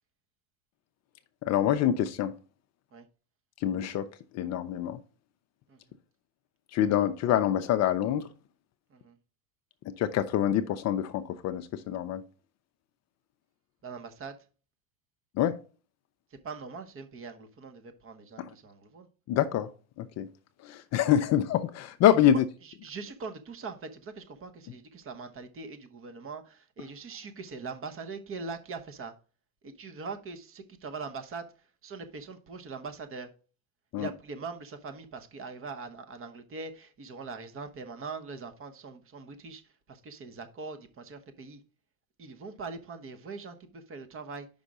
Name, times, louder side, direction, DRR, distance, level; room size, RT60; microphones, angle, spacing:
voice 1, 1.4-2.3 3.6-5.0 6.7-8.3 10.0-12.2 15.4-15.6 18.4-18.5 19.3-19.7 20.0-20.3 20.6-22.4 33.9-34.1, left 11 dB, 40° left, 0.5 m, -26 dB
voice 2, 13.8-14.4 16.3-19.1 22.6-29.1 29.6-31.5 31.8-33.3 34.0-39.6 39.9-41.6 42.2-44.5, right 4 dB, 30° right, 1.1 m, -42 dB
5.5 x 5.1 x 4.9 m
hypercardioid pair, 95°, 41 cm